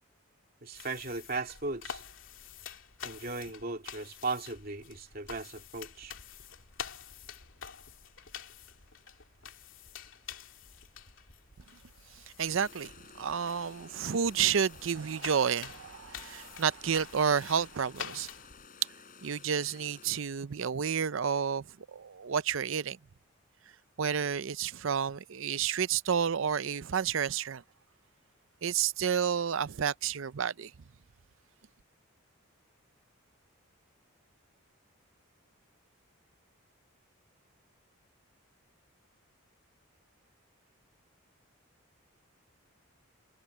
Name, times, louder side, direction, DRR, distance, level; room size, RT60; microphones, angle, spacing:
voice 1, 0.6-2.0 3.0-6.1, right 3 dB, 45° right, 2.8 m, -37 dB
sound 1, 0.7-18.7, left 7 dB, 65° left, 2.7 m, -48 dB
sound 2, 12.4-20.4, left 5 dB, 40° left, 7.2 m, -54 dB
voice 2, 12.4-12.9 13.2-18.3 19.2-21.6 21.9-23.0 24.0-27.6 28.6-30.7, right 7 dB, 65° right, 0.5 m, -30 dB
head